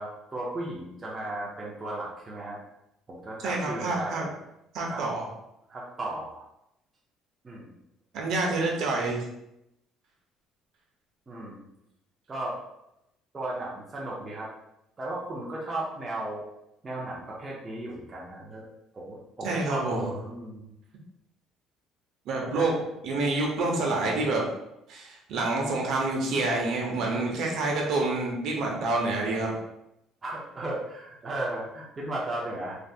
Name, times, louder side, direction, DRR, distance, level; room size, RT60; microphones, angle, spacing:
voice 1, 0.0-2.6 3.1-4.3 4.9-5.0 5.7-6.4 7.4-7.7 11.3-11.6 12.3-12.6 13.3-14.5 15.0-16.4 16.8-18.7 18.9-20.7 22.4-22.7 30.2-32.8, right 1 dB, 20° right, -5 dB, 0.5 m, -35 dB
voice 2, 3.4-4.3 4.7-5.3 8.1-9.2 19.4-20.1 22.3-22.7 23.0-24.4 24.9-29.5, right 2 dB, 55° right, -1 dB, 0.7 m, -27 dB
3.3 x 2.4 x 2.7 m, 0.84 s
cardioid pair, 170°, 0 cm